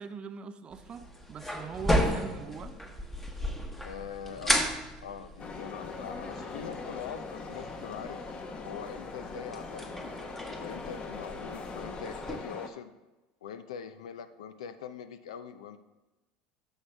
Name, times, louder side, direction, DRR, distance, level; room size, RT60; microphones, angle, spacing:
voice 1, 0.0-2.8, right 6 dB, 35° right, 10 dB, 0.6 m, -42 dB
sound 1, 0.7-12.4, equal, 10° left, 1.1 m, -35 dB
voice 2, 3.8-4.7 5.0-8.2 8.6-10.1 10.6-12.9 13.4-15.8, left 7 dB, 85° left, 11 dB, 0.6 m, -42 dB
sound 2, 5.4-12.7, left 4 dB, 35° left, 0.9 m, -41 dB
9.5 x 6.6 x 3.3 m, 1.1 s
hypercardioid pair, 85°, 3 cm